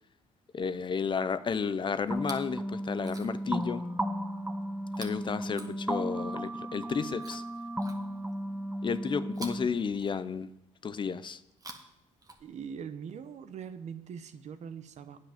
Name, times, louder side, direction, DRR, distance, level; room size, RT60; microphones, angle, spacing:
voice 1, 0.5-3.9 5.0-7.4 8.8-10.5 10.8-11.4, left 6 dB, 35° left, 0.6 m, -32 dB
sound 1, 2.1-9.7, equal, 10° right, 1.0 m, -35 dB
Chewing mastication, 2.1-2.6 2.9-3.6 4.9-6.3 7.2-8.4 9.3-10.6 11.4-12.8 13.8-13.9, right 3 dB, 25° right, 1.3 m, -49 dB
voice 2, 12.4-15.2, right 7 dB, 55° right, 0.8 m, -42 dB
9.3 x 7.8 x 5.8 m
cardioid pair, 90°, 14 cm